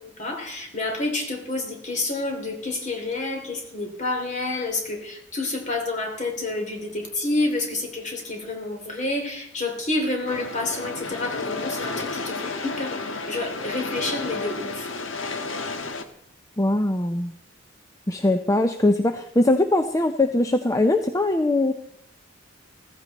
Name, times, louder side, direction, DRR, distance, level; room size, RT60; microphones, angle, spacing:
voice 1, 0.2-14.9, left 2 dB, 40° left, 3 dB, 3.1 m, -29 dB
sound 1, 10.3-16.0, left 3 dB, 80° left, 1.4 m, -32 dB
voice 2, 16.6-17.3 18.1-21.7, left 2 dB, 15° left, 8 dB, 0.6 m, -21 dB
15.0 x 15.0 x 4.1 m, 0.71 s
head